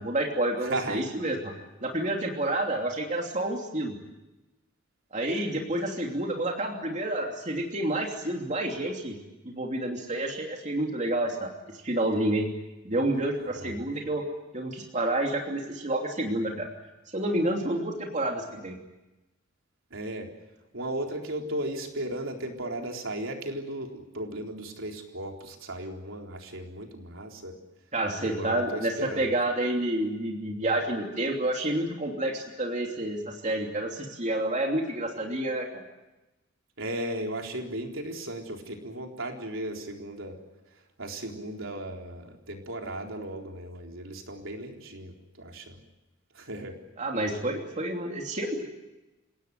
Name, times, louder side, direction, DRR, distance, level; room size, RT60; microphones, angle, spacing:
voice 1, 0.0-1.5 1.8-4.0 5.1-9.2 9.4-11.5 11.8-12.5 12.8-14.2 14.5-16.7 17.1-18.8 27.9-35.8 47.0-48.6, right 1 dB, 35° right, 1 dB, 3.0 m, -29 dB
voice 2, 0.6-1.1 13.5-13.8 19.9-20.3 20.7-27.6 28.2-29.3 36.8-40.4 41.0-45.8 46.3-46.8, right 1 dB, 75° right, 2 dB, 4.0 m, -36 dB
29.0 x 17.5 x 9.4 m, 1.0 s
head